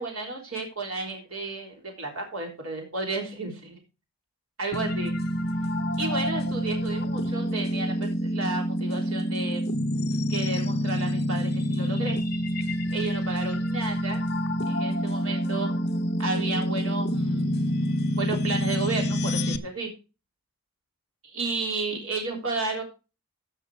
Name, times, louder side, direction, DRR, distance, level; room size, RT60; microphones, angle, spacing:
voice 1, 0.0-3.8 4.6-5.1 6.0-9.6 10.3-12.2 12.9-14.2 14.7-15.7 16.2-17.5 18.2-19.9 21.2-22.8, right 3 dB, 70° right, 1 dB, 3.4 m, -32 dB
sound 1, 4.7-19.6, equal, 45° left, 0.9 m, -27 dB
14.5 x 6.5 x 4.7 m, 0.31 s
head